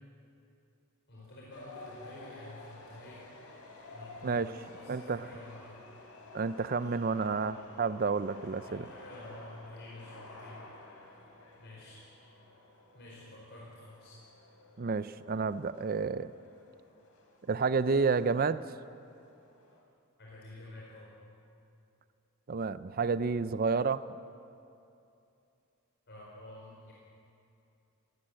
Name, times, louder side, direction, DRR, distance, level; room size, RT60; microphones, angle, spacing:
voice 1, 1.1-3.2 3.9-5.8 6.8-7.5 8.6-10.7 11.6-12.0 12.9-14.2 20.2-21.1 26.1-26.9, left 1 dB, 50° left, -6 dB, 4.8 m, -50 dB
sound 1, 1.5-19.8, left 2 dB, 80° left, 3.6 m, -52 dB
voice 2, 4.9-5.2 6.3-8.9 14.8-16.3 17.5-18.6 22.5-24.0, right 4 dB, 40° right, 14 dB, 0.5 m, -30 dB
18.0 x 17.0 x 8.9 m, 2.7 s
head